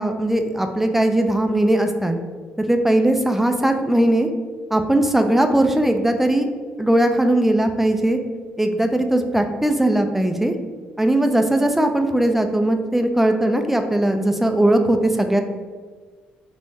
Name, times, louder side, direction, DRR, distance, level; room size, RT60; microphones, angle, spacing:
voice 1, 0.0-2.2 2.7-4.3 4.7-6.5 6.8-8.2 8.6-10.5 11.0-15.4, right 1 dB, 5° right, 6 dB, 0.4 m, -19 dB
3.5 x 2.6 x 4.0 m, 1.5 s
supercardioid pair, 65°, 4 cm